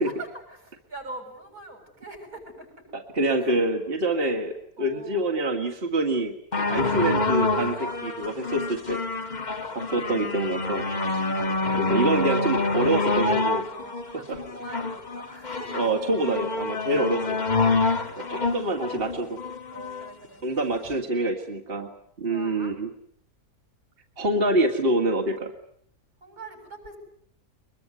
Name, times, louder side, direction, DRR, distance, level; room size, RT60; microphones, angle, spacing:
voice 1, 0.0-2.9 3.4-3.5 4.8-5.3 8.5-8.7 9.1-10.0 13.7-15.9 17.8-18.3 19.7-20.5 22.3-22.8 26.2-27.0, right 2 dB, 80° right, 3 dB, 8.2 m, -44 dB
voice 2, 2.9-9.0 9.7-10.9 11.8-13.6 14.3-14.4 15.7-17.4 18.3-19.4 20.4-21.9 22.2-22.9 24.2-25.5, right 1 dB, 40° right, 2 dB, 2.4 m, -26 dB
sound 1, 6.5-20.1 20.9-21.0, left 3 dB, 30° left, 1.6 m, -27 dB
24.0 x 22.5 x 9.6 m, 0.67 s
omnidirectional pair, 1.5 m